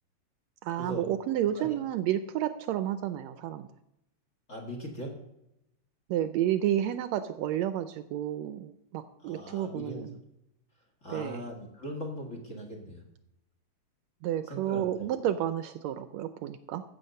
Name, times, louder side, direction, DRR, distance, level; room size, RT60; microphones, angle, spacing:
voice 1, 0.6-3.7 6.1-10.2 11.1-11.4 14.2-16.8, right 11 dB, 80° right, 11 dB, 1.7 m, -31 dB
voice 2, 4.5-5.1 9.2-10.0 11.0-13.0 14.5-15.1, equal, 30° left, 1 dB, 1.9 m, -39 dB
15.0 x 7.8 x 5.4 m, 0.86 s
omnidirectional pair, 3.3 m